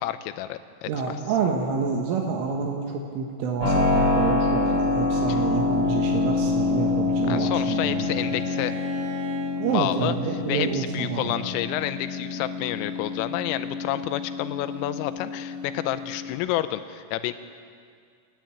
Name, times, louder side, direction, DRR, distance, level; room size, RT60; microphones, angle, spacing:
voice 1, 0.0-1.2 5.3-5.4 7.3-8.7 9.7-10.2 10.5-17.3, left 13 dB, 90° left, 11 dB, 3.3 m, -29 dB
voice 2, 0.9-8.2 9.6-11.4, right 6 dB, 80° right, 1 dB, 3.8 m, -28 dB
Keyboard (musical), 3.6-16.3, left 3 dB, 15° right, 6.7 m, -26 dB
Bowed string instrument, 6.4-9.6, right 1 dB, 55° right, 2.8 m, -41 dB
28.5 x 10.5 x 9.0 m, 2.2 s
omnidirectional pair, 5.8 m